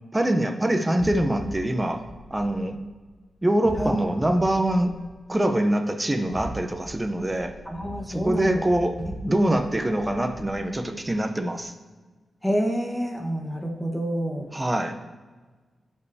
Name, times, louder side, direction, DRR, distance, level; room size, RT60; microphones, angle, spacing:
voice 1, 0.1-2.0 2.3-2.8 3.4-4.9 5.3-7.5 8.1-9.0 9.3-11.7 14.5-15.0, right 1 dB, 15° right, 6 dB, 0.7 m, -24 dB
sound 1, 1.0-3.1 3.6-5.5 6.1-11.2, right 1 dB, 45° right, 2.4 m, -41 dB
voice 2, 7.6-8.6 9.0-9.6 12.4-14.5, equal, 5° left, 1 dB, 1.3 m, -28 dB
14.0 x 5.4 x 2.8 m, 1.4 s
wide cardioid pair, 95°, 0 cm